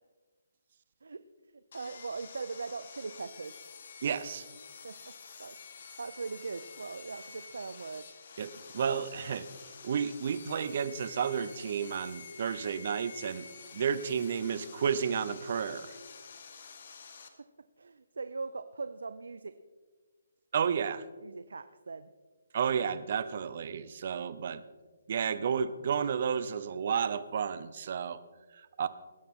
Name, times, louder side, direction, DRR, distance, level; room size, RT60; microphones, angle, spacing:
voice 1, 1.5-3.6 4.8-5.1 5.4-8.1 17.4-17.5 17.8-19.6 21.2-22.1, right 4 dB, 80° right, 12 dB, 0.6 m, -40 dB
Sawing, 1.7-17.3, left 6 dB, 50° left, 1.5 m, -49 dB
voice 2, 4.0-4.5 8.4-9.5 9.8-13.5 13.7-16.0 20.5-21.0 22.5-24.6 25.1-28.2 28.5-28.9, right 7 dB, 45° right, 14 dB, 0.7 m, -32 dB
19.5 x 10.5 x 3.7 m, 1.4 s
hypercardioid pair, 160°, 0 cm